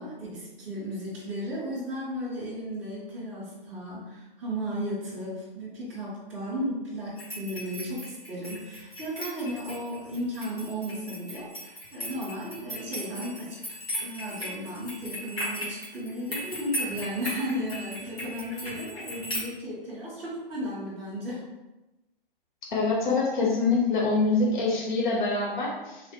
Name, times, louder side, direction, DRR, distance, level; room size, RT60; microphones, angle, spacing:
voice 1, 0.0-21.5, equal, 5° right, -10 dB, 0.4 m, -35 dB
sound 1, 7.2-19.4, equal, 85° left, 1.5 m, -37 dB
voice 2, 22.7-26.0, left 3 dB, 55° left, -2 dB, 0.8 m, -25 dB
3.2 x 2.0 x 2.7 m, 1.0 s
figure-of-eight pair, 125°, 29 cm